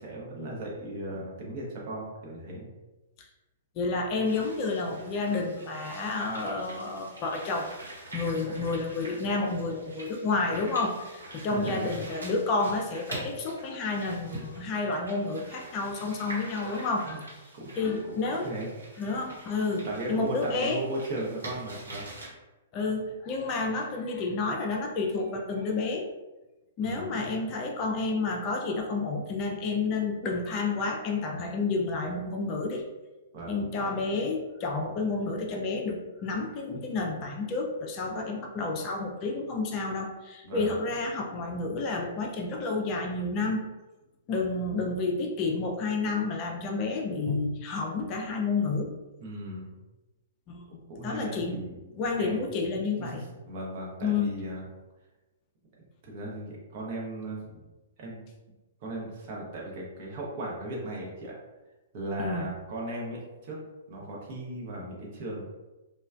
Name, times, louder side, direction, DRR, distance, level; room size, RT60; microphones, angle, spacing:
voice 1, 0.0-2.7 11.3-11.9 17.0-17.2 17.5-18.1 18.4-18.7 19.8-22.1 26.8-27.2 33.3-33.6 40.4-40.7 49.2-49.8 50.9-51.7 52.2-52.4 53.0-54.6 56.0-57.6 58.0-58.2 58.8-61.3 61.9-63.6 63.9-65.4, right 1 dB, 40° right, -3 dB, 0.8 m, -37 dB
voice 2, 3.8-7.7 8.1-17.2 17.8-18.5 19.0-20.9 22.7-26.1 26.8-32.8 33.5-43.6 44.3-48.9 50.5-51.6 51.9-53.2 54.0-54.3 62.2-62.5, left 3 dB, 30° left, 1 dB, 0.4 m, -30 dB
sound 1, 4.2-22.3, right 2 dB, 75° right, 1.1 m, -45 dB
3.0 x 2.2 x 2.4 m, 1.1 s
figure-of-eight pair, 115°, 0 cm